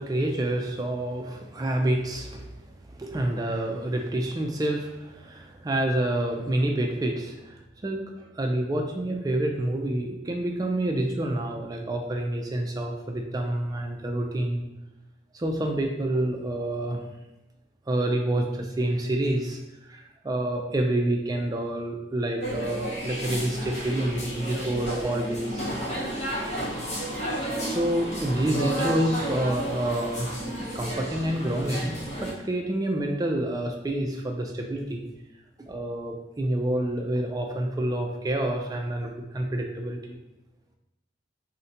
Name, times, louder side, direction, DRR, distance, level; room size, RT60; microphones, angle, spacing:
voice 1, 0.0-2.6 2.9-14.6 15.3-17.0 17.9-25.7 27.6-30.3 30.7-35.0 35.7-40.2, right 1 dB, 20° right, 2 dB, 0.3 m, -28 dB
sound 1, 22.4-32.3, equal, 35° left, 0.7 m, -32 dB
3.8 x 2.1 x 2.7 m, 0.94 s
head